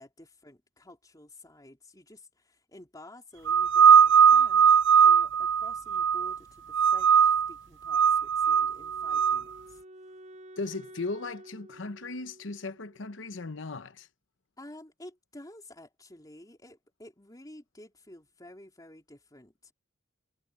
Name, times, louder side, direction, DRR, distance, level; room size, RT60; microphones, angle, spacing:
voice 1, 0.0-4.7 5.0-9.8 14.6-19.7, left 1 dB, 20° left, 3.6 m, -51 dB
sound 1, 3.5-6.4 6.7-7.5 7.9-9.4, right 7 dB, 70° right, 0.7 m, -20 dB
Wind instrument woodwind instrument, 8.4-13.5, right 1 dB, 40° right, 6.3 m, -51 dB
voice 2, 10.6-14.1, left 3 dB, 80° left, 0.9 m, -37 dB
head